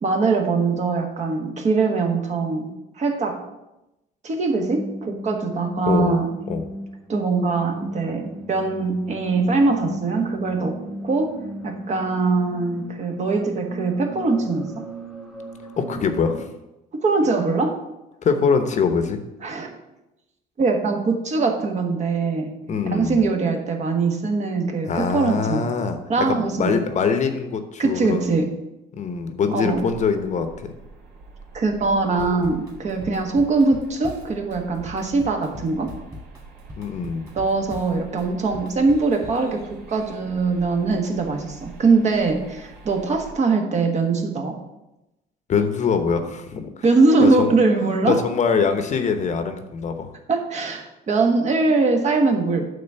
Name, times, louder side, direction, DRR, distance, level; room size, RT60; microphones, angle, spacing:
voice 1, 0.0-3.4 4.2-6.4 7.1-14.9 16.9-17.8 19.4-19.7 20.6-22.5 22.8-25.6 26.1-26.8 27.8-28.5 29.5-29.8 31.5-35.9 37.3-44.6 46.8-48.2 50.3-52.7, right 3 dB, 45° right, 3 dB, 1.4 m, -22 dB
sound 1, 4.6-16.5, right 1 dB, ahead, 1.1 m, -36 dB
voice 2, 5.9-6.2 6.5-6.6 15.8-16.5 18.2-19.2 22.7-23.2 24.9-26.0 26.3-28.4 28.9-30.7 36.8-37.3 45.5-46.8 47.2-47.5 48.0-50.1, left 5 dB, 45° left, 7 dB, 0.9 m, -23 dB
sound 2, 29.7-43.3, right 3 dB, 70° right, 2.7 m, -44 dB
Drum kit / Drum, 32.2-39.5, left 1 dB, 20° right, 2.4 m, -41 dB
8.9 x 3.7 x 6.9 m, 0.93 s
cardioid pair, 110°, 17 cm